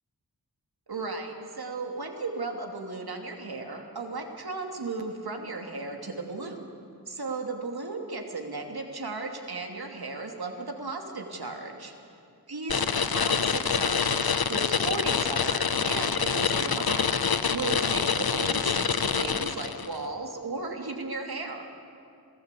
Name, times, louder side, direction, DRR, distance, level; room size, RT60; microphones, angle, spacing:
voice 1, 0.9-6.7 7.1-11.9 12.5-12.8 13.1-17.2 17.5-21.7, right 3 dB, 70° right, 3 dB, 2.7 m, -35 dB
sound 1, 12.7-20.0, left 6 dB, 65° left, 0.9 m, -26 dB
27.0 x 17.5 x 8.3 m, 2.6 s
wide cardioid pair, 75°, 39 cm